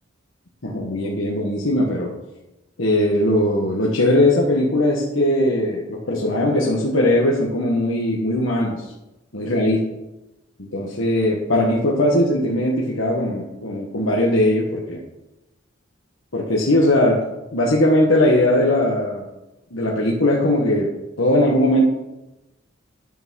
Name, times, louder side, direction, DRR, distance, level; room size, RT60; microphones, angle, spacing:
voice 1, 0.6-2.1 2.8-8.8 9.3-9.8 10.6-15.0 16.3-17.2 17.5-19.2 19.7-20.9 21.2-21.8, left 1 dB, 85° left, -3 dB, 1.6 m, -19 dB
10.5 x 5.9 x 6.4 m, 0.98 s
head